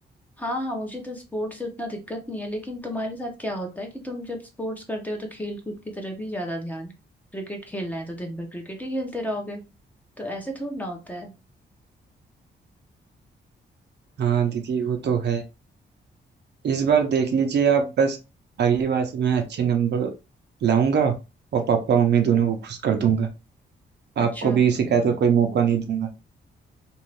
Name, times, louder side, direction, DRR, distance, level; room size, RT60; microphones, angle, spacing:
voice 1, 0.4-6.9 7.3-9.6 10.2-11.3 24.2-24.6, equal, 10° left, 2 dB, 0.7 m, -32 dB
voice 2, 14.2-15.4 16.6-18.2 18.6-20.1 20.6-21.1 21.5-23.3 24.2-26.1, right 7 dB, 70° right, 4 dB, 0.7 m, -21 dB
2.6 x 2.4 x 3.2 m, 0.28 s
cardioid pair, 120°, 18 cm